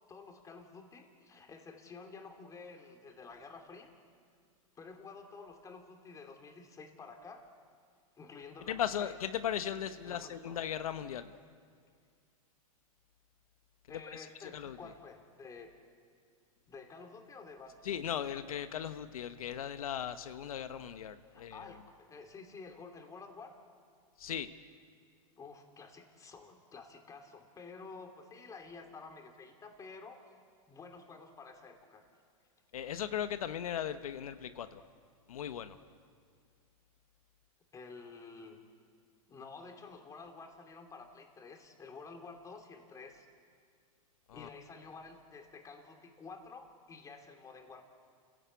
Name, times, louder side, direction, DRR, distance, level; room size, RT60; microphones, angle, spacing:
voice 1, 0.1-3.9 4.7-7.5 8.2-9.1 10.0-10.6 13.9-15.8 16.7-17.8 21.3-23.6 25.4-30.2 30.7-32.0 37.7-38.7 39.3-43.3 44.3-47.8, left 4 dB, 20° left, 5 dB, 2.9 m, -50 dB
voice 2, 8.7-11.3 14.1-14.9 17.8-21.7 24.2-24.5 32.7-34.8 35.3-35.8 44.3-44.5, left 9 dB, 90° left, 10 dB, 1.1 m, -38 dB
29.5 x 16.5 x 8.3 m, 2.1 s
hypercardioid pair, 130°, 18 cm